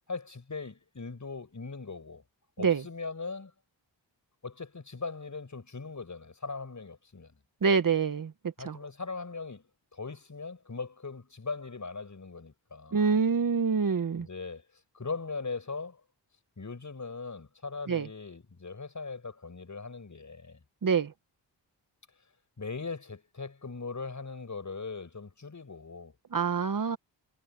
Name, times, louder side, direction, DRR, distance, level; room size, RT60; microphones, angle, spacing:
voice 1, 0.1-2.2 2.6-3.5 4.4-7.4 8.6-13.2 14.2-14.6 14.9-16.0 16.6-20.6 22.6-26.1, left 4 dB, 40° left, 6.9 m, -40 dB
voice 2, 7.6-8.3 8.6-8.8 12.9-14.3 17.9-18.1 20.8-21.1 26.3-27.0, right 5 dB, 45° right, 1.3 m, -26 dB
cardioid pair, 65°, 45 cm